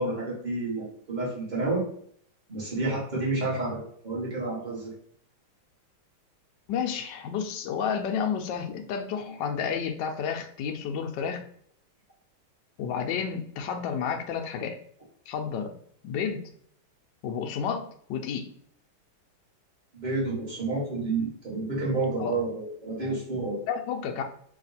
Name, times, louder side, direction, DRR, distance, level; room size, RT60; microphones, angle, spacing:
voice 1, 0.0-1.8 2.5-4.9 19.9-23.6, right 2 dB, 25° right, -5 dB, 1.4 m, -30 dB
voice 2, 6.7-11.4 12.8-14.8 15.3-15.7 16.0-16.5 17.2-18.5 22.1-22.4 23.7-24.2, left 7 dB, 70° left, 5 dB, 1.1 m, -31 dB
3.5 x 2.8 x 4.0 m, 0.64 s
omnidirectional pair, 2.3 m